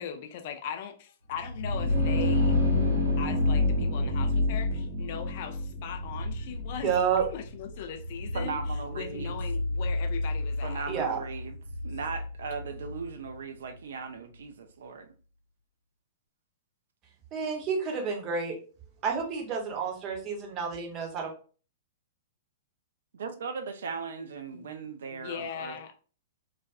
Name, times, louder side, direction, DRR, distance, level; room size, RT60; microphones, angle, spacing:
voice 1, 0.0-2.6 3.2-8.6 8.9-10.9 24.5-24.8 25.1-25.9, left 8 dB, 45° left, 0.4 m, -39 dB
sound 1, 1.4-13.0, left 2 dB, 85° left, 0.9 m, -29 dB
voice 2, 6.8-7.2 10.9-11.2 17.3-18.6 19.0-21.3, right 6 dB, 30° right, 0.7 m, -29 dB
voice 3, 8.3-9.3 10.6-11.6 11.8-15.1 23.1-25.8, right 5 dB, 60° right, 0.3 m, -38 dB
2.4 x 2.2 x 2.4 m
figure-of-eight pair, 105°, 0 cm